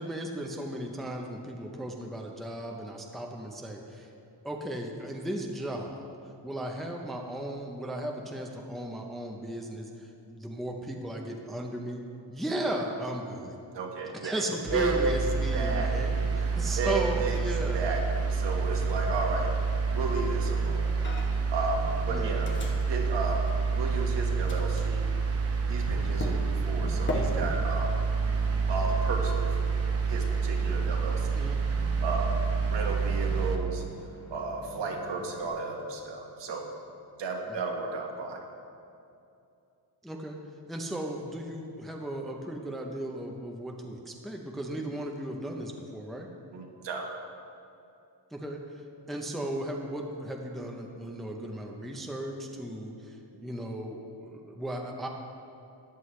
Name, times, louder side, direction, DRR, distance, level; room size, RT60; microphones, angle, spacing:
voice 1, 0.0-4.1 4.4-6.1 6.4-12.0 12.3-13.6 14.1-17.9 22.1-22.4 31.3-31.6 40.0-40.4 40.7-46.3 48.3-48.8 49.1-55.1, right 1 dB, ahead, 1 dB, 0.6 m, -36 dB
voice 2, 13.7-14.4 14.7-15.2 15.5-17.4 17.7-19.5 19.9-20.9 21.5-22.5 22.9-23.5 23.8-25.1 25.7-28.0 28.7-29.5 30.1-31.5 32.0-32.4 32.7-33.8 34.3-36.7 37.2-38.4 46.5-47.1, right 3 dB, 70° right, 1 dB, 1.5 m, -33 dB
sound 1, 14.7-33.6, right 5 dB, 30° right, 0.8 m, -28 dB
Microwave oven, 21.0-21.5 21.8-24.1 24.5-35.5, left 1 dB, 25° left, 1.1 m, -41 dB
14.0 x 9.7 x 3.2 m, 2.6 s
wide cardioid pair, 160°, 45 cm